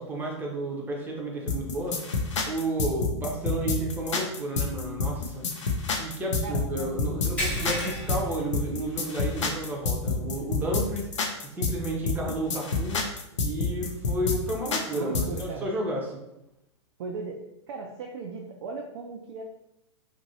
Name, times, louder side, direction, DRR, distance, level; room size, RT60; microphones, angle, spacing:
voice 1, 0.0-2.1 2.5-5.5 6.0-11.1 11.4-16.2, right 1 dB, 10° right, -1 dB, 0.7 m, -32 dB
sound 1, 1.5-15.4, left 4 dB, 70° left, 0.6 m, -28 dB
voice 2, 6.4-7.4 7.8-8.2 14.9-15.7 17.0-17.4 17.7-19.4, right 4 dB, 55° right, 0 dB, 0.4 m, -37 dB
sound 2, 7.4-9.3 9.6-9.8 10.3-10.4 12.0-12.1, equal, 10° left, 1.1 m, -33 dB
2.9 x 2.6 x 2.7 m, 0.85 s
hypercardioid pair, 110°, 16 cm